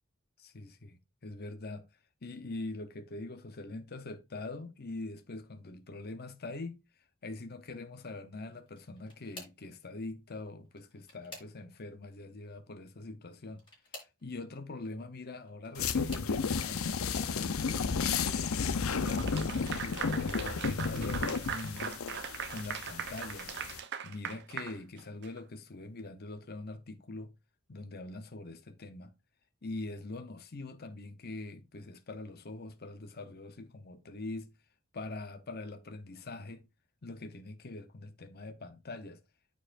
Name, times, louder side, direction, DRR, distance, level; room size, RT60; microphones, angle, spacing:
voice 1, 0.4-1.8 2.2-6.8 7.2-13.6 13.9-18.0 18.7-21.9 22.5-23.5 24.0-27.3 27.7-29.1 29.6-34.5 34.9-36.6 37.0-39.2, left 2 dB, 50° left, 0.8 m, -43 dB
sound 1, 8.7-9.7 10.6-11.9 13.5-14.2 15.3-16.4 17.1-17.5 17.9-18.0 19.4-19.5, left 2 dB, 25° left, 3.4 m, -51 dB
sound 2, 15.8-23.8, left 5 dB, 80° left, 0.7 m, -33 dB
Clapping / Applause, 19.0-25.4, right 8 dB, 55° right, 0.7 m, -40 dB
13.5 x 4.7 x 2.5 m
head